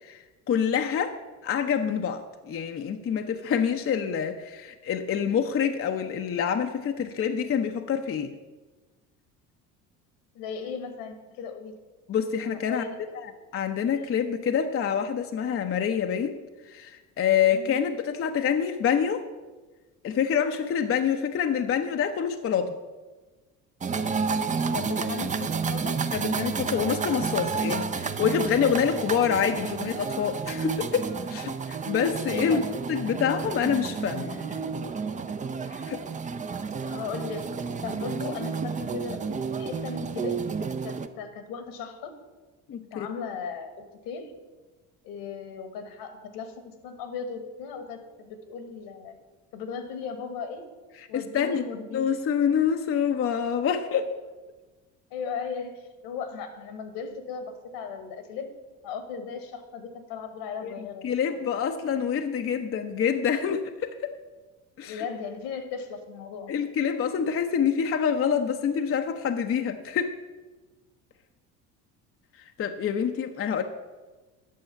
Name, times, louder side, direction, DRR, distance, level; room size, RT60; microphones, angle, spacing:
voice 1, 0.0-1.1 1.4-8.3 12.1-12.9 13.2-16.4 16.7-19.2 20.0-22.8 26.1-32.6 32.9-34.4 35.7-36.0 42.7-43.1 51.0-51.6 51.9-54.1 60.6-64.1 64.8-65.0 66.5-70.1 72.6-73.6, left 7 dB, 30° left, 6 dB, 0.6 m, -26 dB
voice 2, 10.3-11.8 12.7-13.2 17.5-17.8 24.7-26.0 32.3-32.7 34.2-34.7 36.8-37.5 37.8-40.4 40.8-42.1 42.9-44.3 45.0-49.2 49.5-50.7 51.1-52.2 53.9-54.0 55.1-58.5 58.8-61.1 64.8-66.5, left 5 dB, 65° left, 8 dB, 1.5 m, -37 dB
sound 1, 23.8-41.1, right 5 dB, 20° right, 0.5 m, -31 dB
9.1 x 6.4 x 5.7 m, 1.2 s
hypercardioid pair, 65°, 44 cm